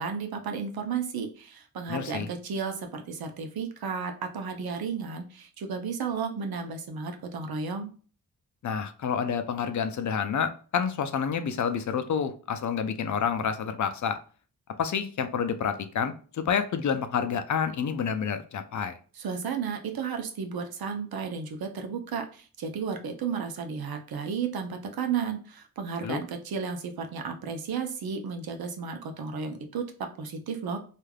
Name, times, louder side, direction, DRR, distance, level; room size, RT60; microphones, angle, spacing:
voice 1, 0.0-7.9 19.2-30.8, right 6 dB, 70° right, 5 dB, 0.7 m, -33 dB
voice 2, 1.9-2.3 8.6-14.2 14.8-19.0 26.0-26.2, left 7 dB, 50° left, 9 dB, 0.5 m, -29 dB
3.2 x 2.4 x 2.3 m, 0.39 s
cardioid pair, 70°, 38 cm